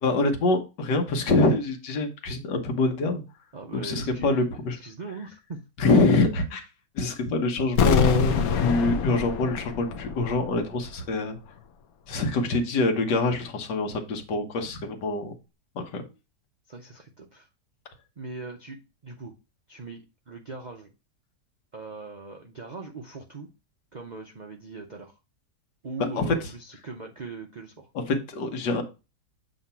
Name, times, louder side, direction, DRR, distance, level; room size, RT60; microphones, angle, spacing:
voice 1, 0.0-3.2 3.7-4.8 5.8-6.7 6.9-11.4 12.1-15.3 15.7-16.0 26.2-26.3 28.1-28.8, left 2 dB, 80° left, 4 dB, 1.7 m, -25 dB
voice 2, 3.5-5.6 16.7-17.5 18.2-19.3 19.7-20.9 21.7-23.5 23.9-25.2 25.8-27.9, right 3 dB, 65° right, 3 dB, 0.4 m, -40 dB
sound 1, 7.8-10.7 10.9-11.0, left 6 dB, 65° left, 1.1 m, -25 dB
7.8 x 3.0 x 5.5 m, 0.29 s
omnidirectional pair, 1.8 m